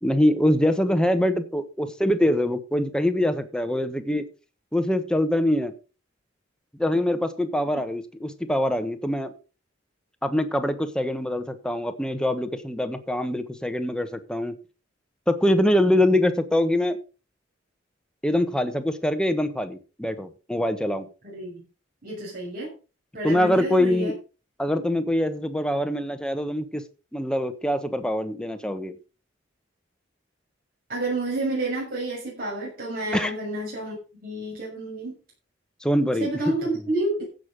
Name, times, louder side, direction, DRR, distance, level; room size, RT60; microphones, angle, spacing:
voice 1, 0.0-4.3 4.7-5.7 6.8-9.3 10.2-14.5 15.3-17.0 18.2-21.1 23.2-24.1 24.6-26.8 27.1-29.0 33.1-33.3 35.8-36.5, left 1 dB, 5° left, 8 dB, 1.2 m, -24 dB
voice 2, 21.2-21.6 22.0-22.7 23.1-24.1 30.9-35.1 36.2-37.2, right 2 dB, 50° right, -4 dB, 6.3 m, -30 dB
15.5 x 6.5 x 5.1 m, 0.34 s
head